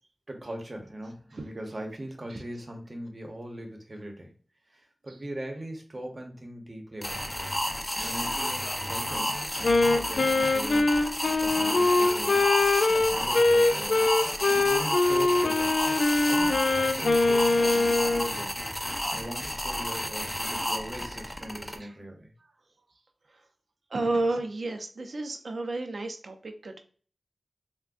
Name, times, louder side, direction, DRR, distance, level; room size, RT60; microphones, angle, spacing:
voice 1, 0.3-4.3 4.7-7.4 7.9-11.0 11.4-12.5 12.9-14.0 14.5-15.8 16.3-18.6 19.1-22.3, right 1 dB, 45° right, 2 dB, 0.8 m, -40 dB
sound 1, 7.0-21.8, left 1 dB, 20° left, 0.6 m, -31 dB
Wind instrument woodwind instrument, 9.6-18.3, left 3 dB, 90° left, 0.3 m, -23 dB
voice 2, 23.9-26.8, right 2 dB, 75° right, 4 dB, 0.5 m, -31 dB
3.6 x 2.2 x 2.4 m, 0.42 s
cardioid pair, 50°, 0 cm